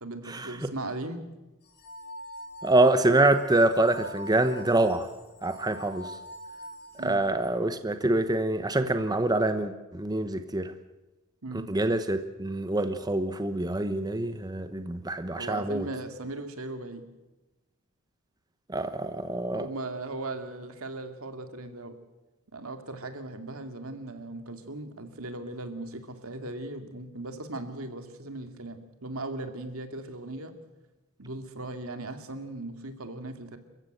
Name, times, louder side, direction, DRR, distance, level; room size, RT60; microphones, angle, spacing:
voice 1, 0.0-1.2 7.0-7.2 11.4-11.7 15.4-17.0 19.5-21.9 22.5-30.5 31.2-33.6, right 2 dB, 75° right, 7 dB, 2.4 m, -38 dB
sound 1, 1.6-7.5, equal, 50° left, 4.7 m, -44 dB
voice 2, 2.6-5.1 5.4-6.1 7.0-10.7 11.7-15.9 18.7-19.7, right 2 dB, 20° right, 9 dB, 0.9 m, -25 dB
28.0 x 15.0 x 7.9 m, 1.1 s
head